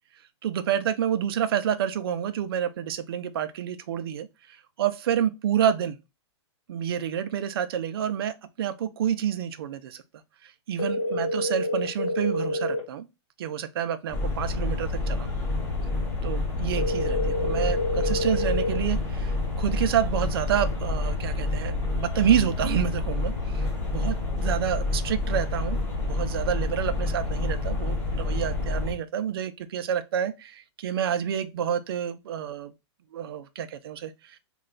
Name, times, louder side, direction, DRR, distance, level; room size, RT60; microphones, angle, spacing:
voice 1, 0.4-6.0 6.7-10.0 10.4-13.1 13.4-15.3 16.2-24.1 24.4-32.7 33.1-34.4, right 9 dB, 55° right, 0.4 m, -28 dB
sound 1, 10.8-12.8 16.8-18.8, left 2 dB, 45° left, 2.1 m, -28 dB
sound 2, 14.1-28.9, left 2 dB, 15° left, 1.1 m, -28 dB
3.2 x 2.3 x 3.8 m
hypercardioid pair, 165°, 15 cm